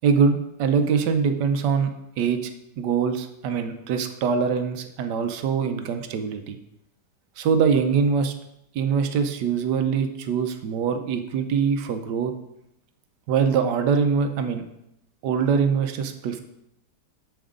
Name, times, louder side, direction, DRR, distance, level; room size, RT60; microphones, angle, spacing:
voice 1, 0.0-2.5 2.8-6.6 7.4-8.3 8.7-12.3 13.3-14.6 15.2-16.4, right 6 dB, 85° right, 7 dB, 1.4 m, -23 dB
8.8 x 7.0 x 3.7 m, 0.81 s
omnidirectional pair, 1.8 m